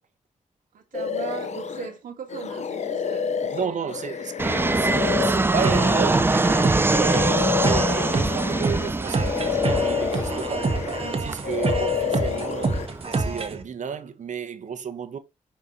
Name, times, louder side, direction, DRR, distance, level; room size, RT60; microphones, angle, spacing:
voice 1, 0.7-3.9, right 7 dB, 85° right, 1.5 m, -39 dB
sound 1, 0.9-1.9 2.3-8.9 9.2-11.2 11.4-12.9, left 6 dB, 55° left, 0.8 m, -29 dB
voice 2, 3.5-12.8 13.2-15.2, right 6 dB, 65° right, 1.2 m, -32 dB
Fixed-wing aircraft airplane, 4.4-13.4, right 2 dB, 15° right, 0.5 m, -24 dB
sound 2, 5.6-13.6, right 3 dB, 45° right, 1.5 m, -28 dB
5.8 x 4.7 x 3.9 m
cardioid pair, 75°, 14 cm